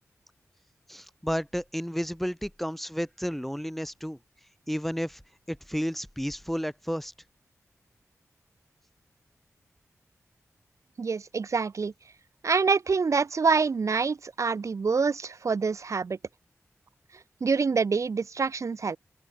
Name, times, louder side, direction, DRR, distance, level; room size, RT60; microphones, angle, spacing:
voice 1, 0.9-4.2 4.7-5.2 5.5-7.1, equal, 5° left, 0.7 m, -32 dB
voice 2, 11.0-11.9 12.4-16.2 17.4-19.0, right 5 dB, 65° right, 0.8 m, -26 dB
open air
cardioid pair, 45°, 6 cm